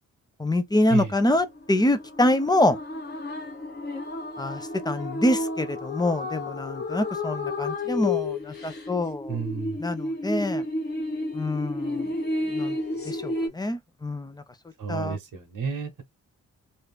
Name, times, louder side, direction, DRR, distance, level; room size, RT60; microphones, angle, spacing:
voice 1, 0.4-2.8 4.4-9.4 9.8-10.6 11.3-12.1 12.5-12.8 13.0-14.4 14.9-15.2, left 1 dB, 10° left, 0.5 m, -25 dB
sound 1, 0.8-13.5, left 2 dB, 30° left, 1.0 m, -32 dB
voice 2, 9.3-9.8 14.8-16.0, right 6 dB, 65° right, 0.9 m, -31 dB
2.7 x 2.4 x 3.5 m
wide cardioid pair, 110°, 35 cm